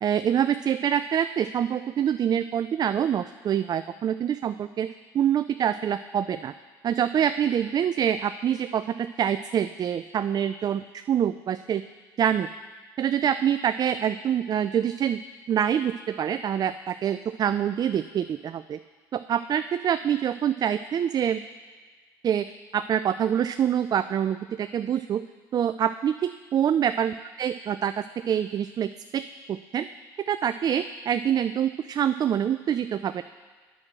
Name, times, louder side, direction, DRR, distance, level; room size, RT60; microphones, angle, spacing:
voice 1, 0.0-4.9 5.1-6.5 6.8-11.8 12.2-12.5 13.0-15.2 15.5-18.8 19.1-21.4 22.2-22.5 22.7-25.2 25.5-29.2 29.5-29.9 30.3-33.2, right 9 dB, 40° right, 11 dB, 0.3 m, -25 dB
8.9 x 6.2 x 7.4 m, 1.4 s
supercardioid pair, 70°, 10 cm